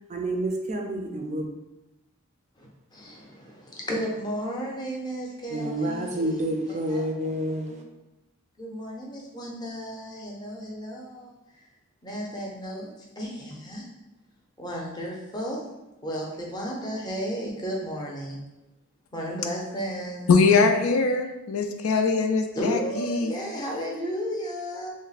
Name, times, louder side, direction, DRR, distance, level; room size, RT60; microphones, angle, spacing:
voice 1, 0.1-1.5 5.5-7.7, right 1 dB, 35° right, 3 dB, 0.4 m, -28 dB
voice 2, 2.6-7.1 7.7-7.8 8.6-11.3 12.0-13.9 14.6-15.6 16.0-18.4 19.1-20.3 22.6-24.9, equal, 20° left, -2 dB, 0.6 m, -34 dB
voice 3, 20.3-23.4, left 4 dB, 90° left, 5 dB, 0.4 m, -22 dB
3.2 x 2.1 x 3.9 m, 0.98 s
head